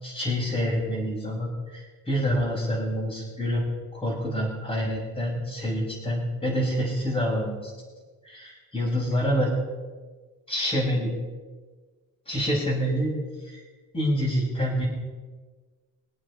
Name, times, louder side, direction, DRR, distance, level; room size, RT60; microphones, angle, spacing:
voice 1, 0.0-7.7 8.2-9.5 10.5-11.1 12.3-13.6 13.9-14.9, equal, 20° left, -7 dB, 5.1 m, -27 dB
24.5 x 8.4 x 4.8 m, 1.4 s
cardioid pair, 135°, 31 cm